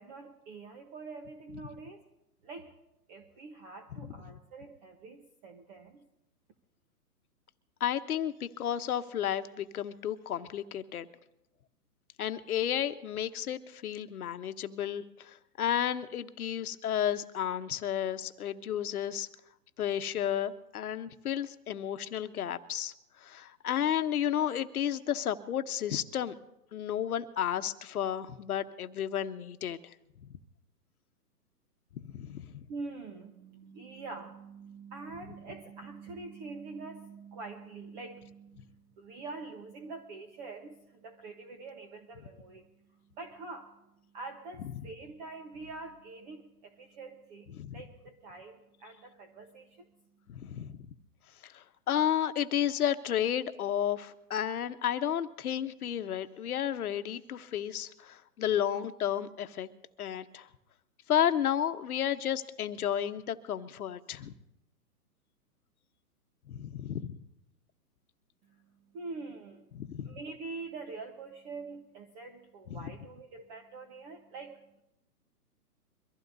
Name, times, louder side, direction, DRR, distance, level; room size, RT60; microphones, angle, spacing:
voice 1, 0.0-2.0 2.4-2.7 3.1-6.1 32.7-43.8 44.1-49.9 68.4-74.8, right 3 dB, 30° right, 5 dB, 1.1 m, -45 dB
voice 2, 7.8-11.1 12.2-19.3 19.8-26.3 26.7-29.9 32.0-32.5 47.5-47.8 50.3-50.9 51.4-59.7 60.0-60.5 61.1-64.3 66.5-67.2 69.7-70.1 72.7-72.9, left 10 dB, 65° left, 10 dB, 1.1 m, -32 dB
23.5 x 15.0 x 2.7 m, 0.88 s
hypercardioid pair, 140°, 47 cm